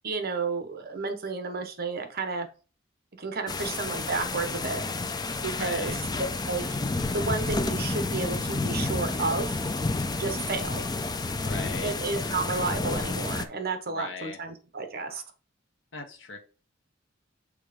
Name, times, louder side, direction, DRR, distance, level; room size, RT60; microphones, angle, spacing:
voice 1, 0.0-2.5 3.2-4.8 5.4-6.8 7.1-9.6 10.2-10.8 11.8-15.2, right 3 dB, 55° right, 6 dB, 1.1 m, -31 dB
sound 1, 3.5-13.5, left 3 dB, 20° left, 0.5 m, -30 dB
voice 2, 5.5-6.0 10.2-10.7 11.4-11.9 13.9-14.4 15.9-16.4, left 4 dB, 70° left, 5 dB, 1.3 m, -39 dB
6.5 x 3.5 x 5.0 m, 0.35 s
head